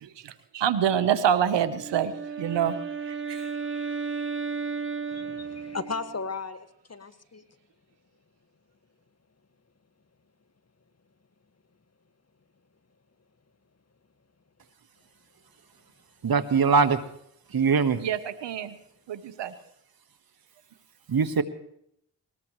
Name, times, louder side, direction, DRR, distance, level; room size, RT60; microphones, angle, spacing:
voice 1, 0.0-2.1 2.4-2.8 3.1-3.5 18.0-18.7 19.1-19.5, right 9 dB, 85° right, 13 dB, 1.1 m, -26 dB
Wind instrument woodwind instrument, 1.7-6.2, right 5 dB, 30° right, 1.7 m, -34 dB
voice 2, 5.1-7.4, left 4 dB, 35° left, 9 dB, 1.8 m, -36 dB
voice 3, 16.2-17.0 17.5-18.0 21.1-21.4, right 5 dB, 60° right, 11 dB, 1.5 m, -21 dB
20.0 x 20.0 x 3.2 m, 0.71 s
supercardioid pair, 45°, 42 cm